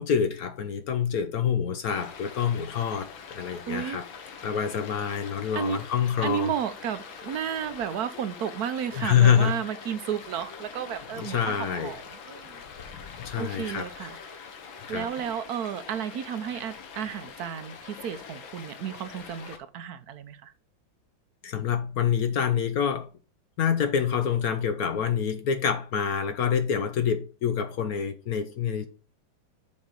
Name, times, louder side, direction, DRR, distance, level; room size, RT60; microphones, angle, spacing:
voice 1, 0.0-4.1 4.4-6.5 8.9-9.8 11.2-11.9 13.2-14.1 14.9-15.1 21.4-23.1 23.6-28.9, left 8 dB, 65° left, 0.9 m, -26 dB
Stream, 1.9-19.6, left 6 dB, 85° left, 1.9 m, -44 dB
voice 2, 3.7-4.0 5.5-5.8 6.2-12.6 13.3-14.4 14.9-20.5, right 9 dB, 60° right, 1.1 m, -33 dB
7.5 x 6.0 x 3.9 m
omnidirectional pair, 2.1 m